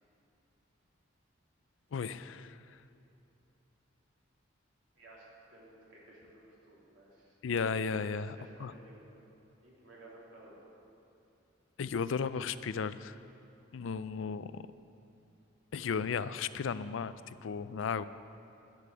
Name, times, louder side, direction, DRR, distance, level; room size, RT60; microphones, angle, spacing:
voice 1, 1.9-2.8 7.4-8.7 11.8-13.2 13.7-14.6 15.7-17.1 17.4-18.1, left 5 dB, 80° left, 14 dB, 0.4 m, -35 dB
voice 2, 4.9-7.4 8.2-9.0 9.4-10.6 14.0-14.2, right 1 dB, 80° right, -5 dB, 3.3 m, -56 dB
12.0 x 6.8 x 8.4 m, 2.7 s
head